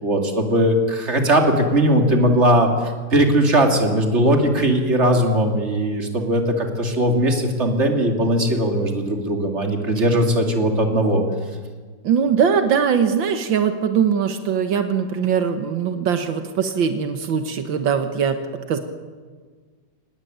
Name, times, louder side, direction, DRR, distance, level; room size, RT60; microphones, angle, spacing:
voice 1, 0.0-11.2, right 1 dB, 35° right, 3 dB, 3.1 m, -19 dB
voice 2, 12.0-18.8, right 7 dB, 85° right, 7 dB, 2.0 m, -21 dB
24.5 x 19.0 x 9.4 m, 1.5 s
omnidirectional pair, 2.0 m